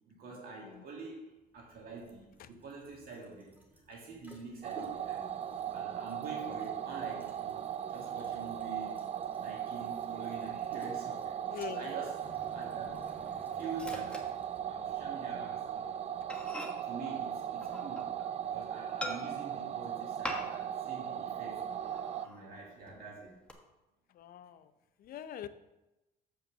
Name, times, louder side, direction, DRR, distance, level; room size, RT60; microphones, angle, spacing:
voice 1, 0.1-1.3 1.5-3.6 3.9-5.4 5.7-7.6 7.9-9.0 9.4-11.4 11.7-13.2 13.5-14.3 14.7-16.1 16.9-21.7 22.2-23.4, right 4 dB, 60° right, -2 dB, 2.1 m, -46 dB
sound 1, 1.3-16.4, equal, 10° right, 1.7 m, -59 dB
sound 2, 4.6-22.3, right 9 dB, 40° right, 0.4 m, -38 dB
voice 2, 11.5-11.9 24.2-24.7 25.0-25.5, left 10 dB, 60° left, 12 dB, 0.6 m, -43 dB
Microwave oven, 12.2-15.1 15.4-15.6 16.0-16.1 16.3-18.4 19.0-19.6 20.2-20.8 21.1-21.2 21.7-22.4 22.9-23.5, left 1 dB, 5° left, 1.2 m, -45 dB
7.2 x 5.5 x 6.6 m, 0.99 s
cardioid pair, 110°, 17 cm